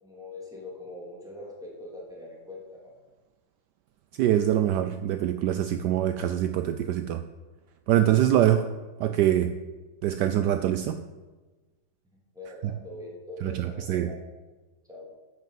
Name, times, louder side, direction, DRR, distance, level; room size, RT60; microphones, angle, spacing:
voice 1, 0.0-2.9 12.3-14.1 14.9-15.1, left 2 dB, ahead, -5 dB, 3.1 m, -42 dB
voice 2, 4.2-7.2 7.9-8.7 9.0-9.5 10.0-11.0 12.6-12.7 13.4-14.1, right 11 dB, 75° right, 9 dB, 1.1 m, -24 dB
10.5 x 6.5 x 7.7 m, 1.2 s
omnidirectional pair, 2.0 m